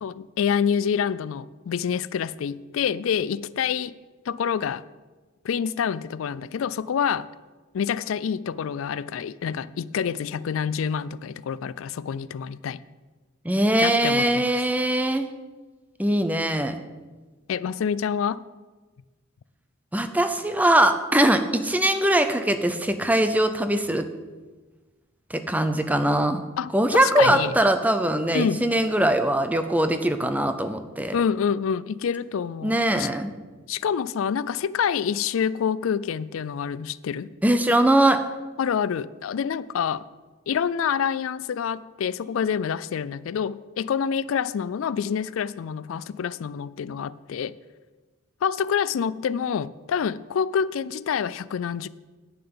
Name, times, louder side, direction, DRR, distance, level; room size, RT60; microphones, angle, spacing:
voice 1, 0.0-3.9 4.3-4.8 5.4-7.3 7.7-12.8 13.8-14.5 17.5-18.4 26.6-27.5 28.3-28.6 31.1-33.1 33.7-37.3 38.6-40.0 40.5-47.6 48.4-51.9, left 7 dB, 80° left, 0.4 m, -27 dB
voice 2, 13.4-15.3 16.0-16.8 19.9-24.1 25.3-26.4 26.7-31.2 32.6-33.3 37.4-38.2, right 1 dB, 10° right, 0.6 m, -21 dB
10.0 x 5.9 x 8.6 m
head